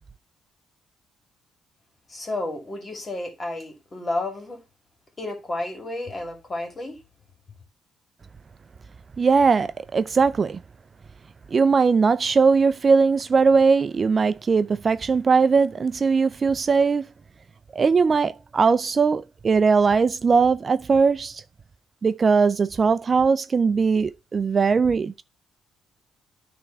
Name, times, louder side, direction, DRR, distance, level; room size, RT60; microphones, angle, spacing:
voice 1, 2.1-4.6 5.2-7.0, left 2 dB, 30° left, 2.5 m, -31 dB
voice 2, 9.2-10.6 11.5-17.1 17.7-21.4 22.0-25.2, right 5 dB, 40° right, 0.4 m, -20 dB
9.5 x 3.4 x 5.5 m
cardioid pair, 90°, 0 cm